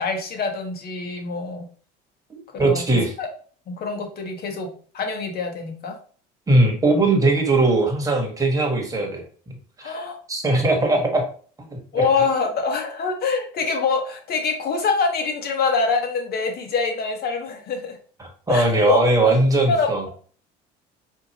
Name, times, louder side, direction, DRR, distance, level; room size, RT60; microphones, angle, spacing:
voice 1, 0.0-1.7 2.5-3.3 3.7-6.0 9.8-10.2 11.9-18.0 18.5-19.0 19.7-20.1, left 4 dB, 50° left, 4 dB, 1.1 m, -25 dB
voice 2, 2.3-3.1 6.5-9.5 9.8-9.9 10.3-11.2 11.7-12.0 18.5-20.0, right 2 dB, 15° right, 2 dB, 1.4 m, -20 dB
4.4 x 2.7 x 2.9 m, 0.43 s
supercardioid pair, 95°, 20 cm